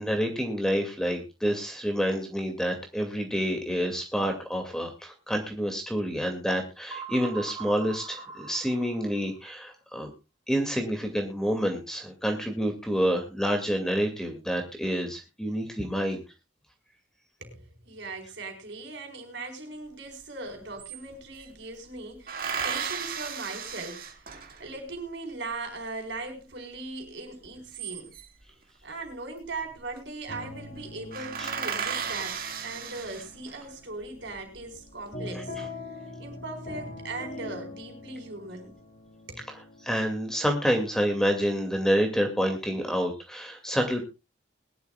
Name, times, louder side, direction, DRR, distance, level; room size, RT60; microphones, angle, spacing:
voice 1, 0.0-10.1 10.5-16.2 31.4-31.5 39.8-44.1, equal, 5° left, 4 dB, 2.2 m, -28 dB
sound 1, 6.9-9.5, right 6 dB, 20° right, 3.3 m, -41 dB
voice 2, 17.4-28.1 28.8-32.4 32.6-35.6 36.0-38.8 39.3-39.4, right 3 dB, 65° right, 4 dB, 4.3 m, -39 dB
sound 2, 20.1-20.2 20.5-21.5 22.3-24.8 27.4-28.4 29.6-30.0 30.3-30.4 30.7-30.8 31.1-33.7 34.2-34.9, right 6 dB, 45° right, 1.9 m, -35 dB
sound 3, 30.3-40.9, left 2 dB, 40° left, 3.1 m, -44 dB
21.5 x 11.5 x 2.3 m, 0.27 s
head